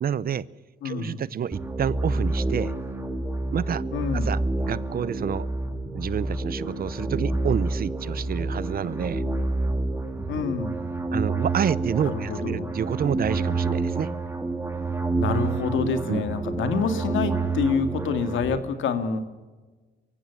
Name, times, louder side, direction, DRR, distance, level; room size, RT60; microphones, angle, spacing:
voice 1, 0.0-0.5 0.8-2.7 3.5-3.8 4.1-5.5 5.9-9.2 11.1-14.1 16.1-16.2, right 8 dB, 50° right, 20 dB, 0.7 m, -28 dB
voice 2, 0.8-1.2 3.9-4.3 10.3-10.8 12.1-12.7 15.2-19.2, left 5 dB, 75° left, 9 dB, 2.2 m, -27 dB
sound 1, 1.5-18.6, right 3 dB, 10° right, 2.3 m, -28 dB
23.5 x 15.5 x 7.2 m, 1.3 s
cardioid pair, 90°, 20 cm